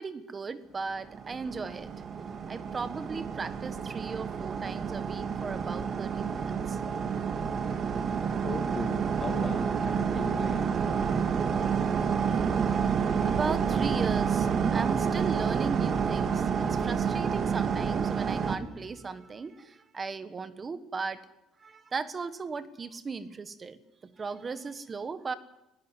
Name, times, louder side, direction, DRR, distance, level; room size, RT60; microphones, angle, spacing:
voice 1, 0.0-1.9 2.5-6.8 12.5-12.6 13.2-21.2 21.6-25.3, right 4 dB, 30° right, 13 dB, 1.4 m, -37 dB
sound 1, 1.0-18.6, right 6 dB, 45° right, 2.1 m, -29 dB
voice 2, 8.4-10.8, left 5 dB, 35° left, 5 dB, 2.3 m, -39 dB
20.5 x 17.0 x 9.8 m, 0.94 s
cardioid pair, 110°, 0 cm